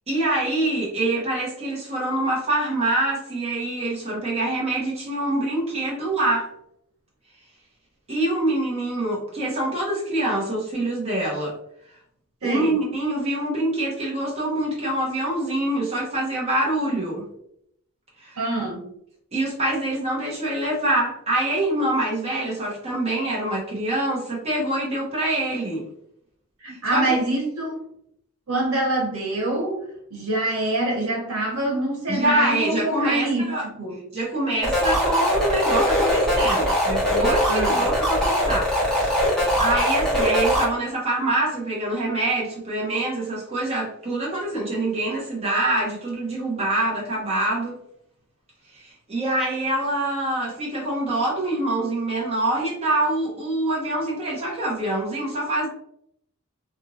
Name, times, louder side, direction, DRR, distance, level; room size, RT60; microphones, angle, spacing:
voice 1, 0.1-6.5 8.1-11.6 12.4-17.3 18.2-18.4 19.3-25.9 26.7-27.1 32.1-33.6 34.1-38.7 39.0-39.1 39.6-47.8 48.7-55.7, right 1 dB, 30° right, -5 dB, 0.9 m, -25 dB
voice 2, 12.4-12.8 18.4-18.8 26.6-27.9 28.5-29.8 30.1-34.0 37.5-37.8, right 1 dB, 80° right, -1 dB, 1.0 m, -25 dB
sound 1, 34.6-40.6, equal, 5° left, 0.9 m, -21 dB
2.9 x 2.5 x 2.6 m, 0.73 s
head